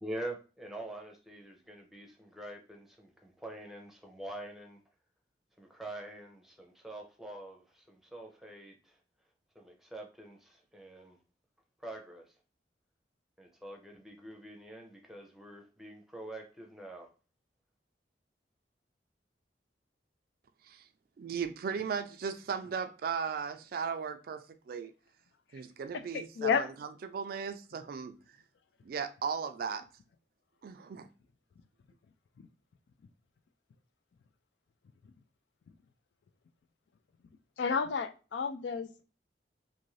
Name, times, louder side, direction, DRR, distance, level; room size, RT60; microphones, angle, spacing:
voice 1, 0.0-4.8 5.6-9.0 9.5-11.2 11.8-12.3 13.4-17.1, right 1 dB, ahead, 0.6 m, -45 dB
voice 2, 21.2-24.9 25.5-28.2 28.8-29.8 30.6-31.1, right 6 dB, 55° right, 0.3 m, -37 dB
voice 3, 26.1-26.7 37.6-39.0, left 6 dB, 75° left, 0.3 m, -31 dB
2.6 x 2.5 x 3.1 m
head